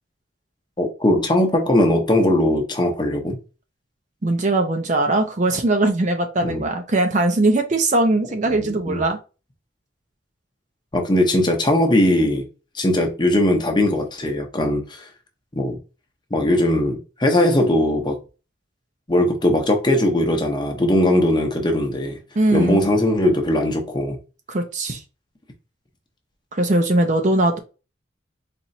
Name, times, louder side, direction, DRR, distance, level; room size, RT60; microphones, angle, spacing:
voice 1, 0.8-3.4 6.4-6.6 8.5-9.0 10.9-12.4 12.7-15.1 15.6-15.8 16.3-18.2 19.1-22.2 22.5-24.2, left 1 dB, 20° left, 0.7 m, -19 dB
voice 2, 4.2-9.2 22.4-22.8 24.5-25.0 26.5-27.6, right 2 dB, 40° right, 0.5 m, -20 dB
4.2 x 3.0 x 2.7 m
head